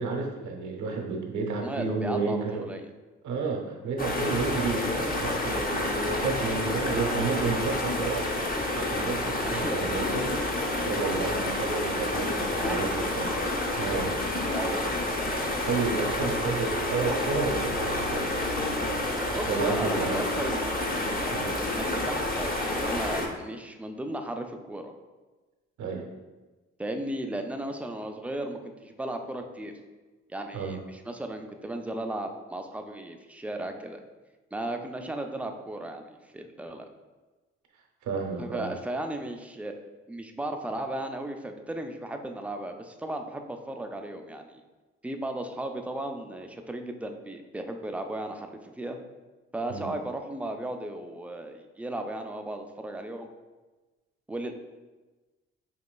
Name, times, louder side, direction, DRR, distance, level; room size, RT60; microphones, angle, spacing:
voice 1, 0.0-2.7 3.2-8.3 8.7-10.5 10.8-13.3 13.8-14.1 15.7-18.3 19.4-20.2 21.3-21.5 25.8-26.1 30.5-30.8 38.0-38.7 49.7-49.9, right 4 dB, 70° right, 1 dB, 0.8 m, -31 dB
voice 2, 1.6-2.9 9.4-9.8 12.6-13.3 14.5-14.9 19.3-20.9 21.7-24.9 26.8-29.7 30.3-34.0 34.5-36.9 38.4-39.7 40.1-44.6 45.0-49.0 49.5-53.3 54.3-54.5, right 1 dB, 5° right, 4 dB, 0.4 m, -35 dB
sound 1, 4.0-23.3, left 1 dB, 30° left, 0.8 m, -29 dB
5.0 x 2.9 x 2.2 m, 1.2 s
hypercardioid pair, 55°, 31 cm